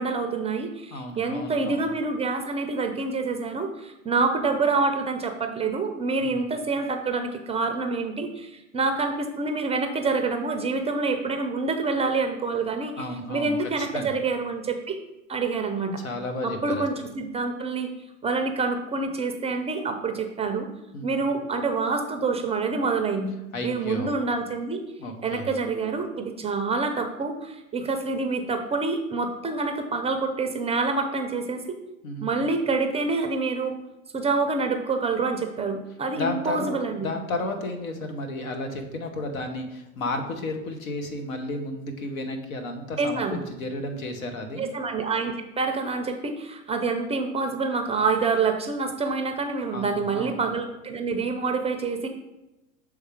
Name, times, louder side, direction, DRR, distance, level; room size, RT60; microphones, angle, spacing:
voice 1, 0.0-15.0 15.3-16.0 16.4-17.9 18.2-20.7 21.0-23.3 23.6-24.8 25.2-31.8 32.2-33.7 34.1-37.1 43.0-43.4 44.6-52.1, right 4 dB, 15° right, 5 dB, 0.4 m, -27 dB
voice 2, 0.9-1.9 6.2-6.3 13.0-14.1 16.0-16.8 20.9-21.4 23.5-24.1 25.0-25.5 32.0-32.5 36.1-44.7 49.7-50.4, left 2 dB, 80° left, 5 dB, 1.2 m, -33 dB
6.4 x 3.6 x 5.0 m, 0.97 s
hypercardioid pair, 100°, 41 cm